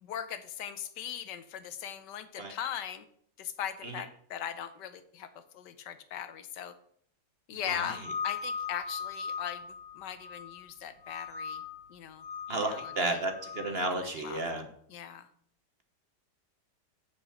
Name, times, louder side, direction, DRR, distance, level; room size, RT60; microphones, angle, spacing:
voice 1, 0.0-3.0 3.4-5.3 5.5-6.7 7.5-9.7 9.9-11.6 11.9-12.2 12.5-12.8 13.9-14.4 14.9-15.3, left 9 dB, 80° left, 11 dB, 1.4 m, -39 dB
voice 2, 7.7-8.0 12.5-14.7, right 2 dB, 40° right, 4 dB, 1.1 m, -32 dB
sound 1, 7.8-10.7 11.0-11.8 12.2-13.7, left 6 dB, 55° left, 2.5 m, -39 dB
8.6 x 5.0 x 7.0 m, 0.64 s
omnidirectional pair, 1.9 m